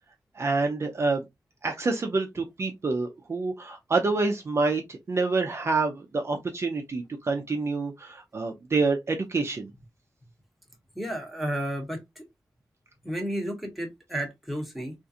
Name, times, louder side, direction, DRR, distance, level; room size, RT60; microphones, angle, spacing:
voice 1, 0.4-1.2 1.6-9.7, right 3 dB, 40° right, 0.5 m, -27 dB
voice 2, 10.9-12.2 13.0-14.9, equal, ahead, 1.0 m, -32 dB
3.7 x 2.5 x 2.7 m
wide cardioid pair, 175°, 7 cm